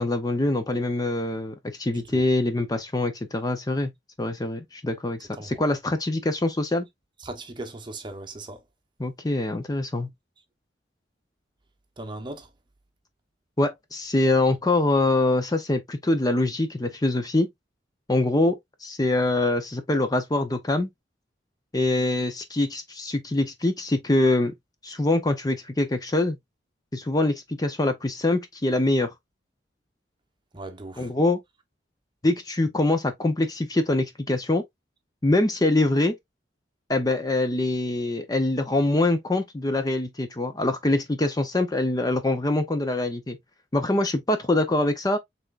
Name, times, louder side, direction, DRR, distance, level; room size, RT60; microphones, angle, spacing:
voice 1, 0.0-3.9 4.2-6.9 9.0-10.1 13.6-17.5 18.1-20.9 21.7-24.5 24.8-26.4 26.9-29.1 31.0-31.4 32.2-34.6 35.2-36.1 36.9-43.4 43.7-45.2, left 2 dB, 20° left, 0.6 m, -24 dB
voice 2, 7.2-8.6 12.0-12.5 30.5-31.1, right 2 dB, 25° right, 0.9 m, -38 dB
6.2 x 3.4 x 2.4 m
head